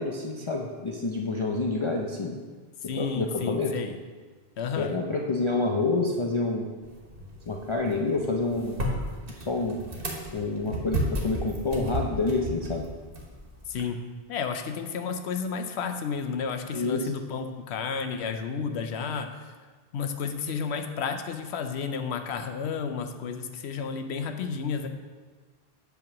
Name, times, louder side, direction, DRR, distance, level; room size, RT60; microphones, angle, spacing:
voice 1, 0.0-2.4 2.9-3.7 4.8-6.7 7.5-8.9 9.4-9.8 10.3-12.8 16.7-17.0, left 3 dB, 40° left, -1 dB, 0.5 m, -28 dB
voice 2, 2.8-4.0 4.6-5.0 13.7-14.0 14.3-19.5 19.9-24.9, left 6 dB, 85° left, 7 dB, 0.9 m, -32 dB
sound 1, 6.8-13.8, equal, 60° right, 1.4 m, -34 dB
8.1 x 3.5 x 5.9 m, 1.4 s
omnidirectional pair, 1.1 m